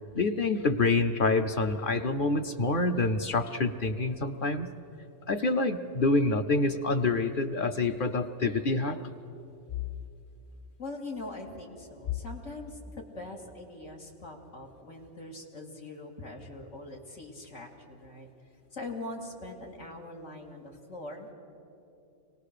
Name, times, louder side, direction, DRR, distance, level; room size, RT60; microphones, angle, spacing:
voice 1, 0.1-4.7 5.3-9.0, left 3 dB, 50° left, 6 dB, 0.8 m, -27 dB
voice 2, 10.8-18.3 18.7-21.3, left 2 dB, 90° left, 0 dB, 2.5 m, -42 dB
24.0 x 18.5 x 6.7 m, 2.8 s
omnidirectional pair, 1.2 m